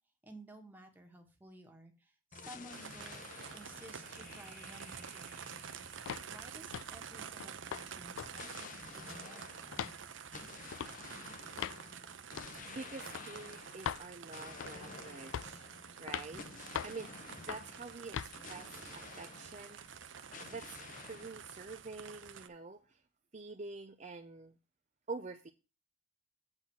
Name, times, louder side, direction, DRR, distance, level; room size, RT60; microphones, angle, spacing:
voice 1, 0.2-5.5 5.9-9.9, right 1 dB, 10° right, 3 dB, 1.5 m, -55 dB
sound 1, 2.3-7.0 8.3-20.0 20.3-21.4, left 4 dB, 40° left, 0.8 m, -52 dB
sound 2, 2.7-22.5, right 7 dB, 70° right, 0.7 m, -49 dB
sound 3, 6.1-6.3 6.7-7.0 7.4-7.9 8.2-8.3 8.6-9.3 9.7-10.0 10.7-10.9 11.6-11.8 12.4-12.6 13.1-13.3 13.8-14.1 14.6-14.9 15.3-15.6 16.1-16.3 16.7-17.0 17.5-17.7 18.1-18.3, left 9 dB, 85° left, 0.3 m, -40 dB
voice 2, 12.7-15.7 16.0-19.8 20.5-20.8 21.1-23.0 23.3-24.5 25.1-25.5, right 3 dB, 35° right, 6 dB, 0.6 m, -47 dB
8.1 x 4.2 x 7.1 m, 0.30 s
head